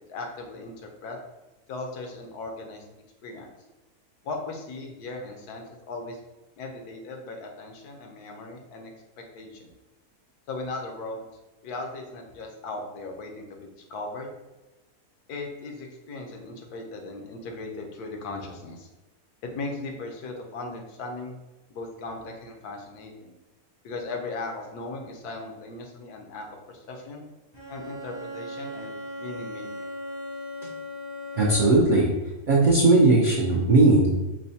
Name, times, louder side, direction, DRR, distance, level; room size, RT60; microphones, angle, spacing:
voice 1, 0.1-1.2 1.7-2.8 3.2-3.5 4.2-6.2 6.6-8.9 9.3-9.7 10.5-11.2 11.6-14.3 15.3-18.9 19.4-21.4 21.7-23.3 23.8-27.2 27.7-29.9, left 3 dB, 90° left, 2 dB, 1.2 m, -37 dB
Bowed string instrument, 27.5-32.0, left 1 dB, 30° left, 0.4 m, -38 dB
voice 2, 31.4-32.1 32.5-34.1, right 2 dB, 90° right, -4 dB, 0.4 m, -18 dB
5.4 x 2.0 x 2.7 m, 1.1 s
omnidirectional pair, 1.6 m